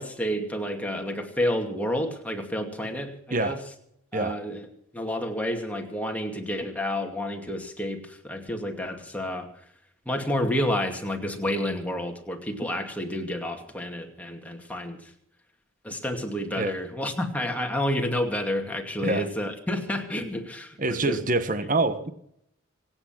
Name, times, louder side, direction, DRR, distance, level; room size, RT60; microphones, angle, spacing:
voice 1, 0.0-3.6 4.1-4.7 4.9-9.5 10.1-15.1 15.8-21.2, left 1 dB, 5° left, 3 dB, 2.4 m, -30 dB
voice 2, 20.8-22.1, right 2 dB, 40° right, 11 dB, 1.3 m, -26 dB
25.5 x 8.9 x 6.0 m, 0.73 s
head